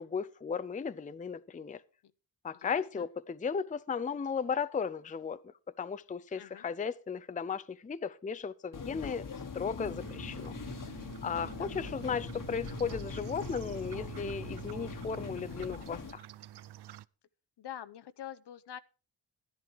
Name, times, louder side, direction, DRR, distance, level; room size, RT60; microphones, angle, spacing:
voice 1, 0.0-1.8 2.4-5.4 5.8-9.3 9.5-10.5 11.2-16.2, left 6 dB, 20° left, 0.5 m, -35 dB
voice 2, 2.5-3.1 6.3-6.6 11.2-11.7 17.6-18.8, left 10 dB, 65° left, 0.8 m, -46 dB
sound 1, 8.7-16.1, left 5 dB, 45° left, 1.4 m, -42 dB
sound 2, 9.8-17.1, right 11 dB, 60° right, 0.5 m, -47 dB
12.0 x 10.5 x 4.7 m
cardioid pair, 65°, 45 cm